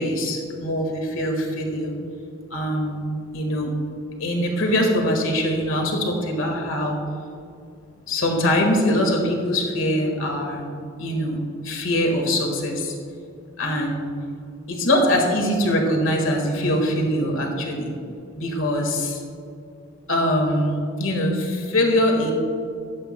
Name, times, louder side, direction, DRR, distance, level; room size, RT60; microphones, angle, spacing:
voice 1, 0.0-1.9 2.5-3.1 3.3-3.7 4.2-7.0 8.1-10.6 11.0-12.9 13.6-14.1 14.7-17.9 18.3-19.2 20.1-22.3, left 1 dB, 85° left, 2 dB, 1.7 m, -23 dB
15.0 x 13.0 x 2.2 m, 2.6 s
head